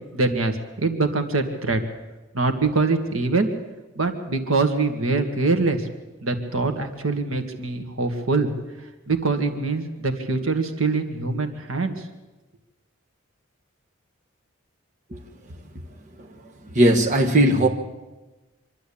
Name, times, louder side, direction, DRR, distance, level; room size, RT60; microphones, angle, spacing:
voice 1, 0.1-1.8 2.3-3.5 4.0-5.9 6.2-8.5 9.1-12.0, right 3 dB, 75° right, 7 dB, 2.0 m, -23 dB
voice 2, 16.7-17.7, right 1 dB, 35° right, 1 dB, 1.5 m, -17 dB
25.5 x 12.0 x 8.7 m, 1.1 s
head